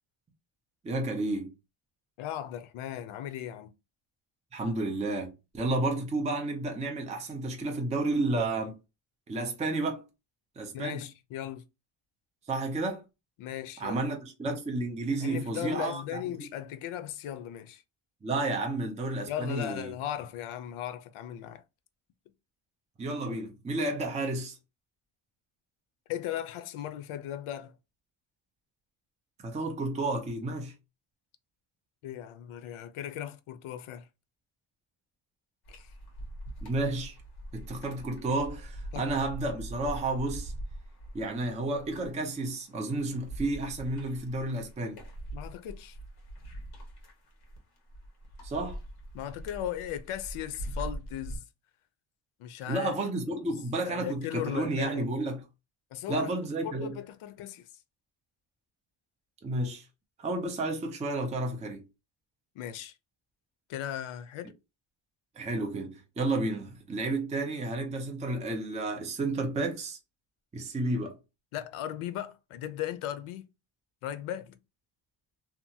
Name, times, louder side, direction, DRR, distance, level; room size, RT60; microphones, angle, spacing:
voice 1, 0.8-1.5 4.5-8.8 9.3-10.1 10.6-11.0 12.5-13.0 13.8-16.5 18.2-19.9 23.0-24.6 29.4-30.7 36.6-37.2 37.5-40.5 41.1-45.0 48.4-48.8 52.7-55.4 56.1-57.0 59.4-59.9 60.2-61.8 65.4-70.0 70.5-71.1, right 2 dB, 15° right, 0.4 m, -31 dB
voice 2, 2.2-3.7 10.7-11.6 13.4-14.1 15.2-17.8 19.3-21.6 26.1-27.7 32.0-34.1 35.7-35.9 38.9-39.1 45.3-46.0 49.1-51.4 52.4-52.9 53.3-53.4 53.9-55.1 55.9-57.7 62.5-62.9 63.7-64.5 71.5-73.4 74.0-74.6, left 11 dB, 75° left, 0.6 m, -37 dB
sound 1, 35.6-51.4, right 1 dB, 50° left, 1.1 m, -42 dB
2.8 x 2.3 x 2.6 m
cardioid pair, 145°, 49 cm